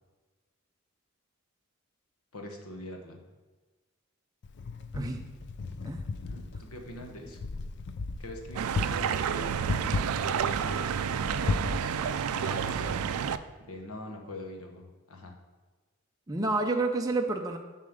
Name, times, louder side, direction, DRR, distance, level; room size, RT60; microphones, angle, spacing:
voice 1, 2.3-3.2 6.2-7.4 8.2-11.8 12.3-13.0 13.7-15.3, left 1 dB, 90° left, 3 dB, 1.2 m, -43 dB
Wind, 4.4-13.3, left 3 dB, 50° left, 0.4 m, -36 dB
sound 1, 8.6-13.4, right 8 dB, 85° right, 0.3 m, -30 dB
voice 2, 16.3-17.6, right 2 dB, 15° right, 2 dB, 0.5 m, -29 dB
7.2 x 4.3 x 6.5 m, 1.3 s
head